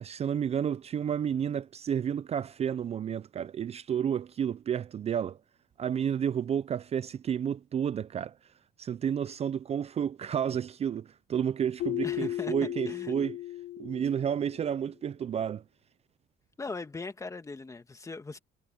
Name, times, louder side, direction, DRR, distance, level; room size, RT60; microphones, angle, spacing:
voice 1, 0.0-5.4 5.8-8.4 8.8-13.4 13.8-15.6, right 8 dB, 40° right, 0.5 m, -31 dB
Keyboard (musical), 11.8-14.6, left 14 dB, 75° left, 6.1 m, -35 dB
voice 2, 12.0-13.1 16.6-18.4, left 3 dB, 20° left, 1.9 m, -40 dB
cardioid pair, 110°, 17 cm